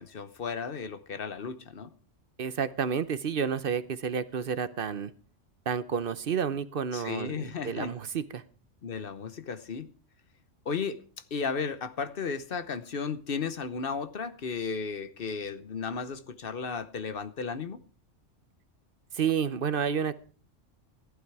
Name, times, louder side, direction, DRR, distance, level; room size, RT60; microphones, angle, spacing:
voice 1, 0.0-1.9 6.9-7.9 8.8-9.9 10.6-11.0 11.3-17.8, left 5 dB, 50° left, 12 dB, 1.1 m, -34 dB
voice 2, 2.4-5.1 5.7-8.4 19.1-20.2, right 7 dB, 50° right, 14 dB, 0.9 m, -30 dB
15.0 x 11.5 x 4.7 m, 0.39 s
omnidirectional pair, 1.3 m